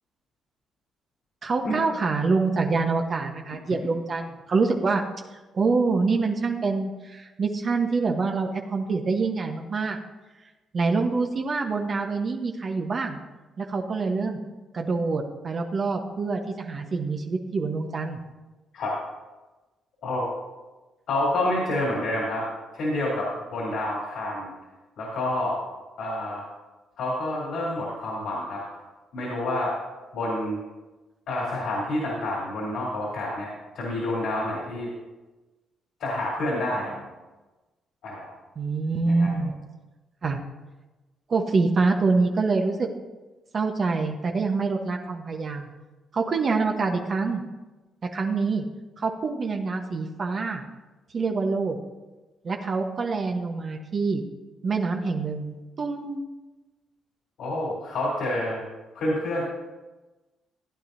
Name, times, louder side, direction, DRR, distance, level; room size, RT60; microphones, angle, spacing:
voice 1, 1.4-5.0 5.5-10.0 10.7-13.2 13.6-14.4 14.7-18.2 38.6-39.5 40.2-40.4 41.3-42.9 43.5-45.7 46.1-47.4 48.0-48.6 49.0-50.6 51.1-51.8 52.4-54.2 54.6-56.2, right 4 dB, 45° right, 2 dB, 1.1 m, -26 dB
voice 2, 21.1-22.4 22.7-24.5 25.0-25.6 26.0-26.5 27.0-28.6 29.1-29.7 30.1-30.6 31.3-33.5 33.7-34.9 36.0-37.0 38.0-38.3 39.0-39.4 57.4-58.6 58.9-59.4, left 1 dB, 75° left, -4 dB, 3.3 m, -28 dB
15.0 x 9.7 x 2.7 m, 1.1 s
cardioid pair, 90°, 0 cm